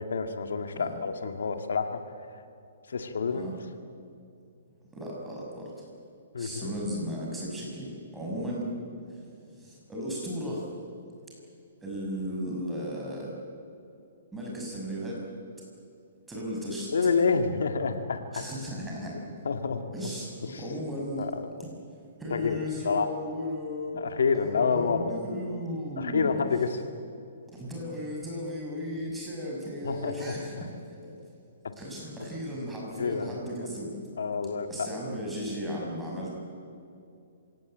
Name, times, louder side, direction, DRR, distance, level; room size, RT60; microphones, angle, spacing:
voice 1, 0.0-2.0 2.9-3.5 6.3-6.7 16.9-18.4 19.4-19.8 20.4-20.6 21.2-21.5 22.3-23.1 24.0-25.2 26.0-26.8 29.8-30.3 33.0-33.7 34.2-34.9, left 5 dB, 85° left, 7 dB, 2.1 m, -28 dB
voice 2, 4.9-5.9 6.4-8.7 9.5-10.7 11.8-13.3 14.3-15.3 16.3-16.9 18.3-19.2 19.9-21.3 21.6-21.7 22.2-24.0 24.3-26.4 27.5-30.7 31.0-31.1 31.8-34.0 34.7-36.3, equal, 5° right, -3 dB, 6.0 m, -35 dB
27.0 x 18.0 x 9.0 m, 2.6 s
hypercardioid pair, 160°, 0 cm